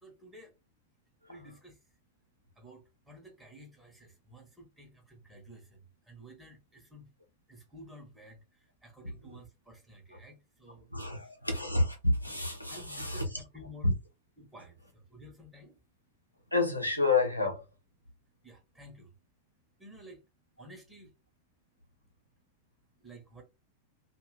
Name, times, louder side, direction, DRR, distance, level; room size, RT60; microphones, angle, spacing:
voice 1, 0.0-0.5 1.3-1.8 2.6-7.1 7.5-11.3 12.7-13.9 14.4-15.8 18.4-19.1 19.8-20.2 20.6-21.1 23.0-23.4, equal, 10° right, 1.1 m, -52 dB
voice 2, 10.9-13.4 13.8-13.9 16.5-17.7, left 2 dB, 90° left, 0.8 m, -29 dB
2.6 x 2.5 x 3.2 m
figure-of-eight pair, 90°, 0 cm